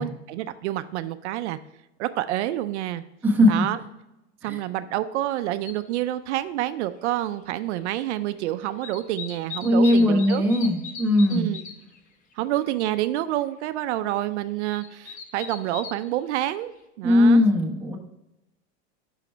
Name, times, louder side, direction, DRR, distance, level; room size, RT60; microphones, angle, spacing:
voice 1, 0.0-1.6 2.0-3.0 3.5-3.8 4.4-10.4 11.3-11.6 12.4-16.7 17.0-17.5, right 14 dB, 80° right, 11 dB, 0.5 m, -28 dB
voice 2, 3.2-3.6 4.4-4.6 9.6-11.5 17.0-18.0, left 1 dB, 5° right, -4 dB, 1.1 m, -19 dB
sound 1, 5.7-5.8 7.2-7.3 7.6-8.4 8.6-12.0 12.3-12.4 12.6-13.0 13.4-13.5 14.4-16.1 16.7-16.8, left 6 dB, 25° left, 0.5 m, -39 dB
5.8 x 4.9 x 4.5 m, 0.92 s
supercardioid pair, 150°, 34 cm